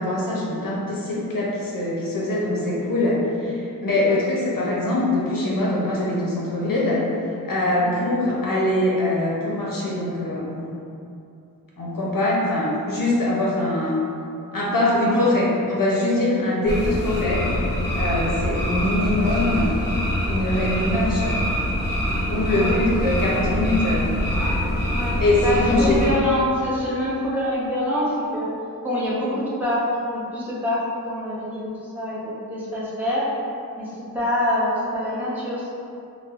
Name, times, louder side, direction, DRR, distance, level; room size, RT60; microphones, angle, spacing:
voice 1, 0.0-7.0 7.4-10.7 11.8-14.0 14.5-17.4 18.0-19.7 20.2-21.4 22.3-24.0 25.2-26.0, left 1 dB, 70° left, -4 dB, 0.6 m, -23 dB
voice 2, 7.8-8.2 15.0-15.3 22.6-22.8 24.9-28.5 28.8-33.3 33.8-35.8, left 1 dB, 5° right, -10 dB, 0.8 m, -26 dB
sound 1, 16.7-26.1, equal, 30° left, 1.0 m, -24 dB
4.1 x 2.1 x 2.4 m, 2.6 s
wide cardioid pair, 80°, 35 cm